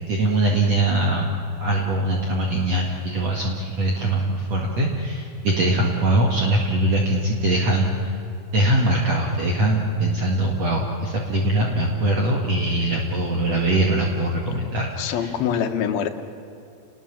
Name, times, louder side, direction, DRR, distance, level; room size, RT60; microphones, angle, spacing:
voice 1, 0.1-1.3 1.6-8.2 8.5-15.3, right 1 dB, 50° right, -1 dB, 2.7 m, -22 dB
voice 2, 15.0-16.1, left 8 dB, 80° left, 6 dB, 3.2 m, -24 dB
29.5 x 20.0 x 7.4 m, 2.7 s
omnidirectional pair, 4.3 m